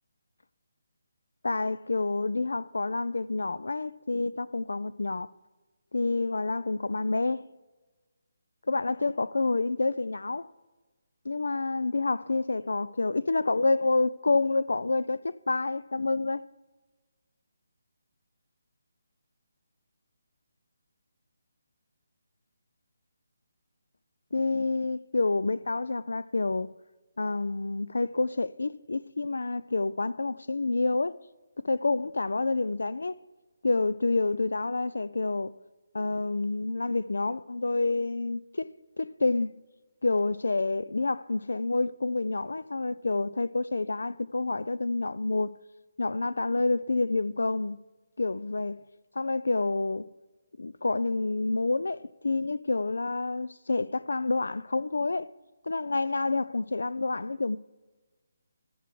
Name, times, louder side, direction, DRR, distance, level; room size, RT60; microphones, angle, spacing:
voice 1, 1.4-5.3 5.9-7.5 8.7-10.5 11.2-16.5 24.3-26.7 27.2-31.2 31.6-33.2 33.6-35.5 35.9-39.5 40.0-45.5 46.0-47.8 48.2-48.8 49.2-50.1 50.6-55.3 55.6-57.6, left 3 dB, 75° left, 0.3 m, -28 dB
12.0 x 4.7 x 7.5 m
figure-of-eight pair, 150°, 0 cm